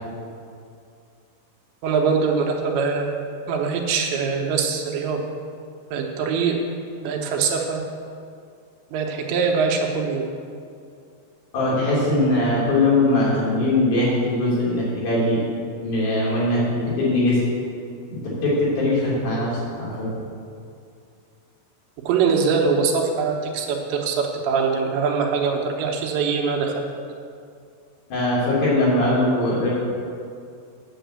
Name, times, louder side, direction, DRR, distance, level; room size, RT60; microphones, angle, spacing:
voice 1, 1.8-5.2 5.9-6.6 7.0-7.8 8.9-10.2 22.1-26.9, right 5 dB, 80° right, 2 dB, 3.2 m, -23 dB
voice 2, 11.5-15.4 15.8-17.4 18.2-20.1 28.1-29.7, left 1 dB, 55° left, -7 dB, 5.0 m, -21 dB
9.1 x 7.2 x 8.1 m, 2.4 s
omnidirectional pair, 5.1 m